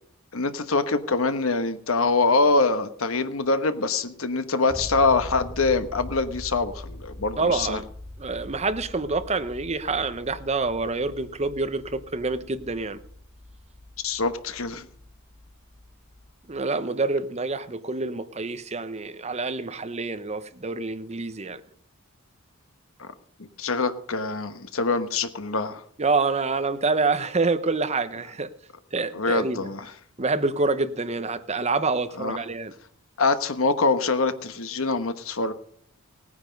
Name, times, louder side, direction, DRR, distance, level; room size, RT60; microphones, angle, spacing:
voice 1, 0.3-7.8 14.0-14.9 23.0-23.1 23.4-25.8 29.1-29.9 32.2-32.4 33.2-35.5, left 3 dB, 70° left, 1.2 m, -24 dB
sound 1, 4.7-16.6, left 1 dB, 5° right, 5.2 m, -42 dB
voice 2, 7.4-7.9 8.2-13.0 16.5-21.6 26.0-28.5 28.9-29.7 30.2-32.7, right 3 dB, 30° right, 0.9 m, -27 dB
18.0 x 9.7 x 5.3 m
head